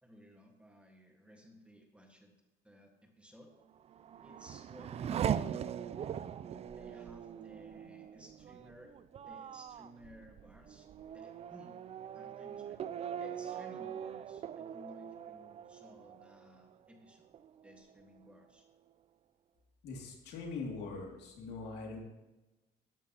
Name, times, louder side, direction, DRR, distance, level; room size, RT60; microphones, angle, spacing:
voice 1, 0.0-2.3 2.6-3.5 4.2-6.0 6.6-8.9 9.2-10.9 11.1-11.8 12.1-12.8 13.2-17.3 17.6-18.6, equal, 5° right, 2 dB, 1.6 m, -56 dB
Race car auto racing / Accelerating revving vroom, 3.7-17.0 17.3-18.0, right 9 dB, 40° right, 0.4 m, -41 dB
voice 2, 19.8-22.0, left 4 dB, 80° left, 0 dB, 2.5 m, -42 dB
13.0 x 10.5 x 2.9 m, 1.1 s
cardioid pair, 110°, 17 cm